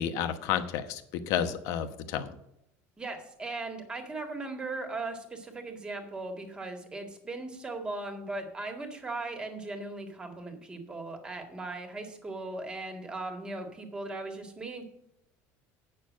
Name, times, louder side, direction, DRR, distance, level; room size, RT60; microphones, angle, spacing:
voice 1, 0.0-2.3, left 9 dB, 65° left, 9 dB, 1.1 m, -31 dB
voice 2, 3.0-14.8, right 2 dB, 15° right, 4 dB, 1.8 m, -38 dB
9.0 x 6.7 x 6.2 m, 0.79 s
cardioid pair, 155°, 6 cm